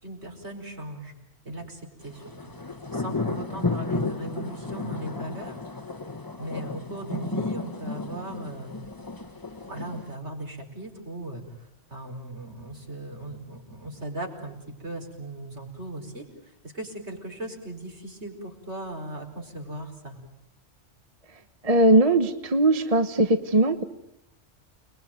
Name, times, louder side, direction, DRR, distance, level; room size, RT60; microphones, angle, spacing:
voice 1, 0.0-1.2 1.5-2.3 2.9-5.6 6.4-8.8 9.7-20.2, right 1 dB, 65° right, 3 dB, 5.4 m, -38 dB
sound 1, 2.1-10.1, left 3 dB, 20° left, 1.2 m, -33 dB
voice 2, 21.6-23.8, right 1 dB, 30° right, 9 dB, 1.2 m, -20 dB
29.5 x 21.0 x 9.2 m, 0.84 s
omnidirectional pair, 1.2 m